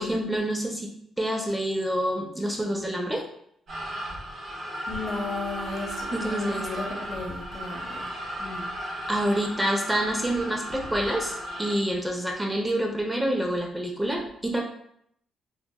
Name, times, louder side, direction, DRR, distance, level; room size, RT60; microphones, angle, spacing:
voice 1, 0.0-3.2 6.1-6.7 9.1-14.6, right 1 dB, 10° right, 1 dB, 0.4 m, -27 dB
sound 1, 3.7-11.7, equal, 65° right, 1.0 m, -35 dB
voice 2, 4.9-8.1 8.4-8.7, left 2 dB, 50° left, 0 dB, 0.7 m, -35 dB
2.8 x 2.2 x 2.2 m, 0.70 s
cardioid pair, 90°, 0 cm